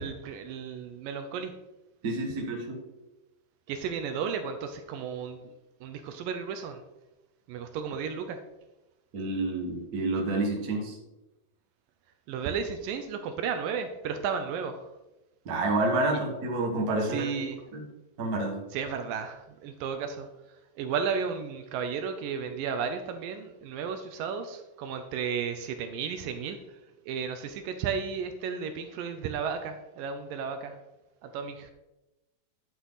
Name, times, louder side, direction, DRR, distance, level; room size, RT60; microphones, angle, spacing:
voice 1, 0.0-1.5 3.7-5.5 5.8-6.8 7.5-8.4 12.3-14.9 17.1-17.6 18.7-20.3 20.8-26.6 27.1-30.8 31.2-31.7, right 6 dB, 75° right, 7 dB, 2.3 m, -33 dB
voice 2, 2.0-2.8 9.1-11.0 15.4-17.3 17.7-17.8 18.2-18.6, right 2 dB, 40° right, 0 dB, 1.3 m, -29 dB
10.5 x 7.7 x 4.0 m, 0.99 s
omnidirectional pair, 4.2 m